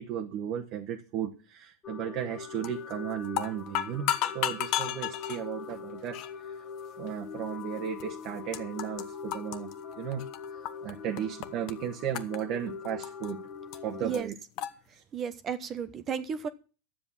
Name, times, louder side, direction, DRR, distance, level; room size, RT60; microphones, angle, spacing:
voice 1, 0.0-6.6 7.0-9.7 10.0-10.2 10.5-13.5 13.8-14.3 14.9-15.0, right 9 dB, 45° right, 3 dB, 1.4 m, -35 dB
sound 1, 1.8-14.2, left 6 dB, 30° left, 1.3 m, -42 dB
sound 2, 2.6-2.9 3.2-5.4 6.1-6.3 7.1-7.2 8.0-8.1 8.3-9.0 9.3-10.9 11.2-11.7 12.1-13.3 13.7-13.8 14.1-14.2 14.6-14.7, left 12 dB, 50° left, 1.0 m, -32 dB
voice 2, 15.1-16.5, right 7 dB, 30° right, 11 dB, 0.9 m, -33 dB
11.5 x 7.8 x 7.3 m, 0.36 s
supercardioid pair, 125°, 0 cm